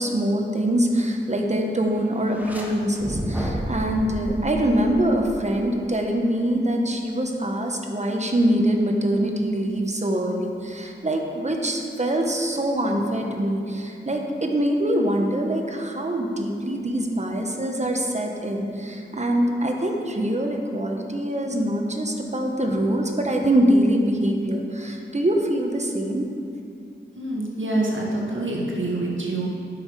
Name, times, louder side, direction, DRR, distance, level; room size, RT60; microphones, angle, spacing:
voice 1, 0.0-26.2, right 1 dB, 35° right, 2 dB, 1.1 m, -24 dB
sound 1, 2.2-2.7 3.0-5.6, equal, 10° right, 1.5 m, -31 dB
voice 2, 27.2-29.5, right 2 dB, 70° right, -3 dB, 1.7 m, -26 dB
9.4 x 6.5 x 4.8 m, 2.5 s
cardioid pair, 50°, 21 cm